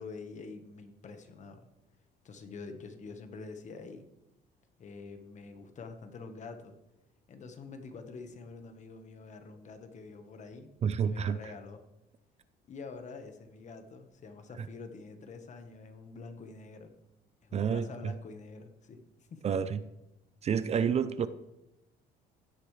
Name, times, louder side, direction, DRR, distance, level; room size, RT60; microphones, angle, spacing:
voice 1, 0.0-1.7 2.2-4.1 4.8-6.8 7.3-10.7 11.0-11.8 12.7-16.9 17.4-19.4, left 4 dB, 45° left, 7 dB, 1.3 m, -46 dB
voice 2, 10.8-11.5 14.6-14.7 17.5-18.1 19.4-19.8 20.4-21.3, right 7 dB, 40° right, 13 dB, 0.5 m, -29 dB
16.0 x 8.3 x 3.3 m, 0.92 s
cardioid pair, 110°, 17 cm